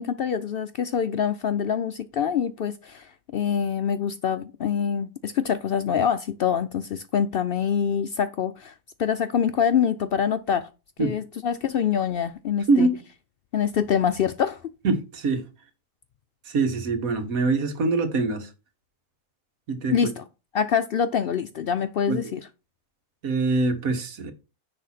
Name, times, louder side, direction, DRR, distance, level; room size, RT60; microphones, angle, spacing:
voice 1, 0.0-10.7 11.0-12.9 13.5-14.6 19.9-20.2 20.5-22.5, left 8 dB, 70° left, 0.5 m, -25 dB
voice 2, 12.7-13.0 14.8-15.4 16.5-18.5 19.7-19.9 22.1-22.2 23.2-24.3, right 3 dB, 85° right, 1.7 m, -23 dB
10.0 x 3.4 x 5.7 m
omnidirectional pair, 1.4 m